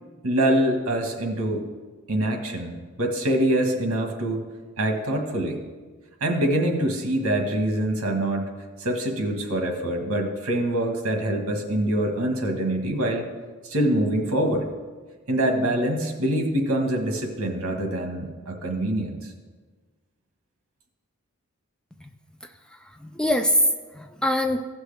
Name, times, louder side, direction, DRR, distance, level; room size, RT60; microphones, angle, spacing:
voice 1, 0.2-1.6 2.1-4.4 4.8-5.6 6.2-8.5 8.8-13.2 13.6-14.7 15.3-19.3, right 1 dB, 75° right, 3 dB, 1.5 m, -25 dB
voice 2, 22.8-24.6, equal, 5° left, 6 dB, 0.3 m, -24 dB
15.5 x 6.3 x 3.4 m, 1.4 s
head